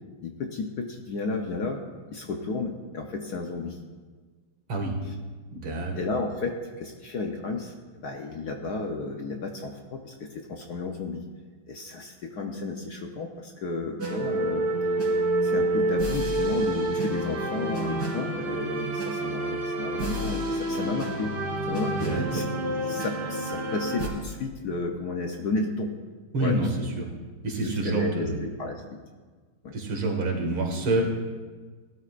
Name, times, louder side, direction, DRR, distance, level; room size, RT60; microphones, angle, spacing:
voice 1, 0.2-3.8 5.0-5.2 5.9-11.2 11.7-14.7 15.4-21.3 21.7-22.4 22.9-25.9 26.4-26.7 27.6-28.8 29.6-29.8, left 3 dB, 60° left, 3 dB, 1.2 m, -33 dB
voice 2, 5.5-5.9 22.0-22.4 26.3-27.1 27.4-28.5 29.7-31.0, right 2 dB, 70° right, 0 dB, 2.7 m, -27 dB
sound 1, 14.0-24.1, right 2 dB, 50° right, 3.3 m, -28 dB
19.5 x 12.5 x 2.5 m, 1.4 s
omnidirectional pair, 2.3 m